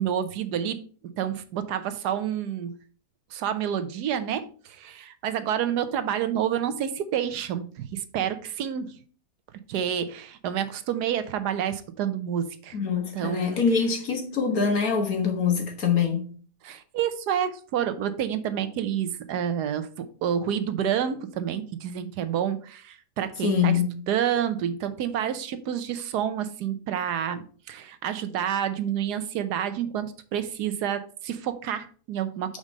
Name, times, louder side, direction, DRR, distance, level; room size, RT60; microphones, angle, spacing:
voice 1, 0.0-2.8 3.3-8.9 9.7-12.8 13.1-13.6 16.6-23.8 24.1-32.6, right 9 dB, 90° right, 1.3 m, -29 dB
voice 2, 12.7-16.2 23.4-24.0, left 6 dB, 65° left, 1.8 m, -24 dB
5.2 x 4.9 x 5.3 m
omnidirectional pair, 1.7 m